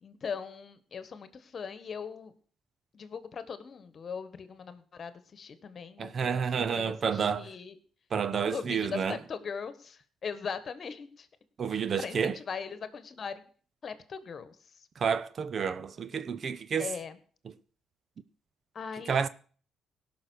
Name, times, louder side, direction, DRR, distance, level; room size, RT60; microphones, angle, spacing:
voice 1, 0.0-2.3 2.9-7.8 8.5-11.3 11.7-13.4 13.8-14.6 16.8-17.2 18.7-19.3, left 6 dB, 50° left, 1.4 m, -40 dB
voice 2, 6.0-7.5 8.1-9.2 11.6-12.4 15.0-16.9 19.1-19.3, right 6 dB, 50° right, 0.7 m, -30 dB
17.0 x 6.2 x 6.3 m
cardioid pair, 90°, 0 cm